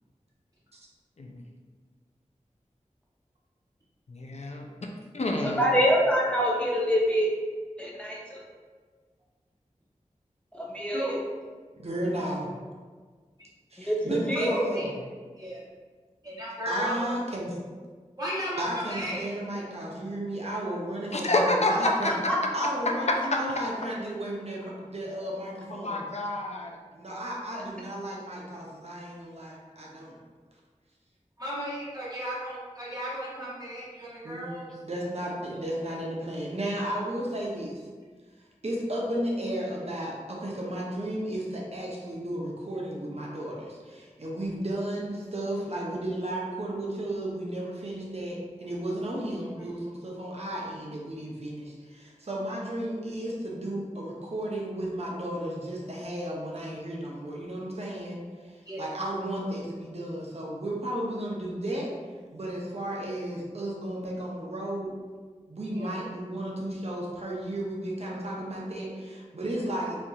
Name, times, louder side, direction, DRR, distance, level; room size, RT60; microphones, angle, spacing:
voice 1, 4.1-4.7 5.1-5.6 21.1-22.1 23.3-23.4 25.8-26.7, left 2 dB, 60° left, 1 dB, 0.4 m, -27 dB
voice 2, 5.4-7.3 7.8-8.4 10.5-11.0 13.8-14.6 22.3-22.4, equal, 10° left, -4 dB, 0.6 m, -25 dB
voice 3, 11.8-12.5 13.7-14.9 16.7-17.6 18.6-22.1 22.5-26.1 26.9-30.2 34.2-34.4 34.8-37.9 38.6-61.9 62.3-64.9 65.5-70.0, right 1 dB, 55° right, -3 dB, 0.7 m, -33 dB
voice 4, 14.4-14.9 15.4-15.6 16.2-17.1 18.2-19.3 27.4-27.5 31.4-34.7 35.5-35.6 49.6-49.7 58.6-58.8 65.7-66.0, equal, 30° right, -8 dB, 1.4 m, -35 dB
4.3 x 2.4 x 2.7 m, 1.5 s
wide cardioid pair, 50°, 13 cm